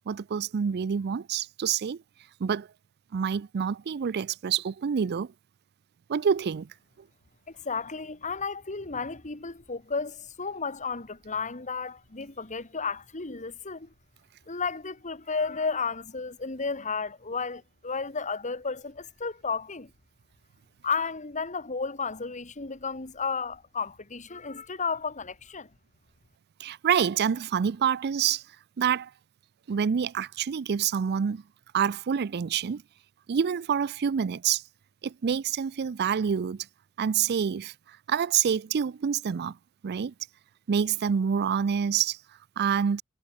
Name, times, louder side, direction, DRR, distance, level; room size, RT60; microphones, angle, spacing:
voice 1, 0.1-2.0 2.4-2.7 3.1-5.3 6.1-6.7 26.6-28.4 28.8-29.1 29.7-31.4 31.7-32.8 33.3-34.6 35.0-36.7 37.0-37.7 38.1-39.6 39.8-40.1 40.7-42.2 42.6-43.0, right 7 dB, 50° right, 0.4 m, -27 dB
voice 2, 7.5-13.9 14.5-19.9 20.8-25.7, left 5 dB, 35° left, 2.0 m, -33 dB
head